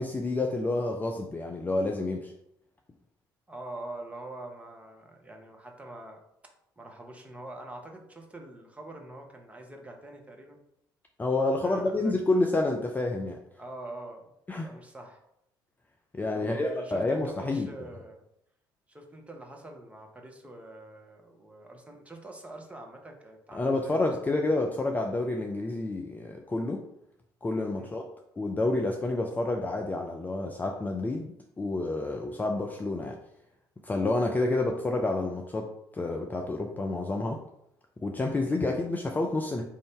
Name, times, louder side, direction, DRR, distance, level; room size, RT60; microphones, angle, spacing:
voice 1, 0.0-2.3 11.2-13.4 14.5-14.7 16.1-17.7 23.5-26.8 27.4-28.0 28.4-33.2 33.8-37.4 38.0-39.6, left 2 dB, 15° left, 2 dB, 0.4 m, -29 dB
voice 2, 3.5-10.6 11.6-12.1 13.6-15.2 16.3-18.2 18.9-24.1 27.8-28.0, right 2 dB, 10° right, 2 dB, 0.9 m, -44 dB
4.4 x 2.6 x 3.6 m, 0.79 s
figure-of-eight pair, 55°, 11 cm